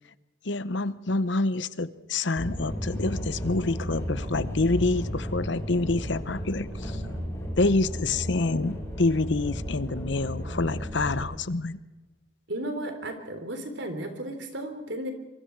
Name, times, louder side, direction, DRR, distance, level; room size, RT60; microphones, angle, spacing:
voice 1, 0.4-7.0 7.6-11.8, left 2 dB, 65° left, 15 dB, 0.8 m, -27 dB
sound 1, 2.4-11.2, equal, 15° left, 6.1 m, -34 dB
voice 2, 12.5-15.1, right 1 dB, 70° right, 7 dB, 3.7 m, -34 dB
26.0 x 24.0 x 4.7 m, 1.1 s
head